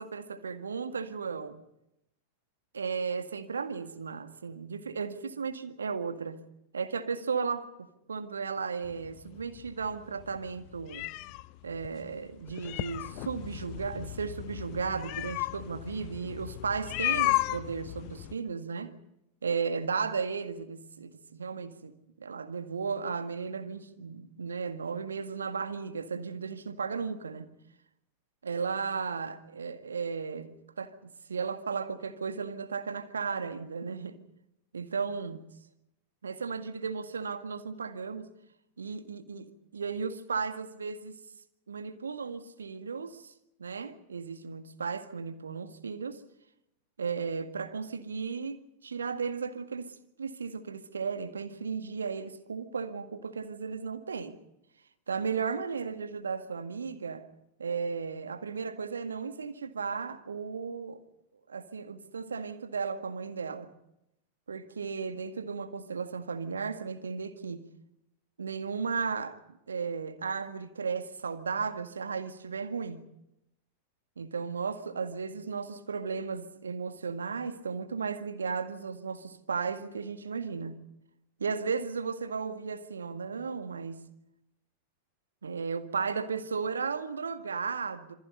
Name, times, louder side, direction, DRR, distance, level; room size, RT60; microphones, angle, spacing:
voice 1, 0.0-1.6 2.7-6.4 6.7-11.1 11.6-18.9 19.4-21.9 22.2-27.5 28.4-34.2 34.7-35.4 36.2-38.3 38.8-41.2 41.7-43.3 43.6-46.2 47.0-54.4 55.1-57.3 57.6-61.0 61.5-63.7 64.5-67.6 68.4-69.4 69.7-73.0 74.2-80.8 81.4-84.0 85.4-88.1, right 5 dB, 70° right, 1.9 m, -35 dB
sound 1, 8.8-18.3, left 18 dB, 45° left, 0.8 m, -35 dB
27.0 x 24.0 x 5.4 m
figure-of-eight pair, 90°, 0 cm